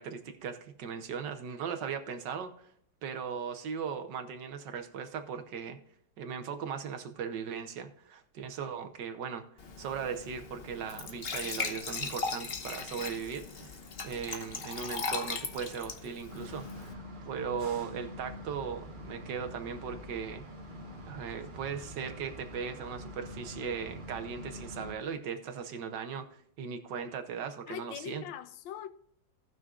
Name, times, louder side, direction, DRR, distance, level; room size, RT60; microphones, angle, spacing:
voice 1, 0.0-2.7 3.0-5.8 6.2-9.4 9.8-13.8 14.0-20.4 21.0-28.2, right 6 dB, 70° right, 1.5 m, -38 dB
Glass / Trickle dribble / Fill (with liquid), 9.6-16.9, left 4 dB, 45° left, 0.8 m, -38 dB
sound 1, 16.3-24.9, left 1 dB, 30° right, 1.1 m, -45 dB
voice 2, 27.7-28.9, left 10 dB, 80° left, 1.4 m, -42 dB
18.0 x 6.1 x 2.4 m
omnidirectional pair, 2.0 m